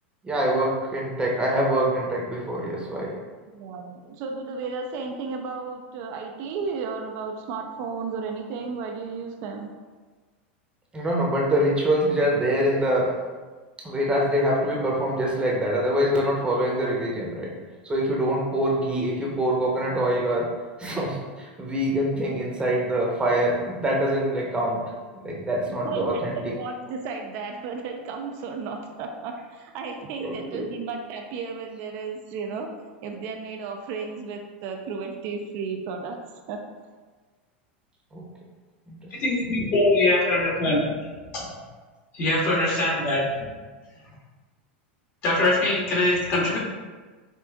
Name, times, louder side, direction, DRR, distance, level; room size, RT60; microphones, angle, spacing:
voice 1, 0.2-3.1 10.9-13.1 13.8-17.5 17.8-20.5 20.8-24.8 25.1-26.5 30.2-30.7 38.1-38.2 38.9-39.0, right 1 dB, 15° right, -2 dB, 0.8 m, -24 dB
voice 2, 3.5-9.7 25.8-36.2 36.5-36.6, right 4 dB, 55° right, 3 dB, 0.4 m, -33 dB
voice 3, 39.2-40.8 41.3-41.4 42.1-43.2 45.2-46.6, left 2 dB, 45° left, -4 dB, 1.4 m, -22 dB
5.1 x 2.5 x 2.3 m, 1.4 s
hypercardioid pair, 105°, 6 cm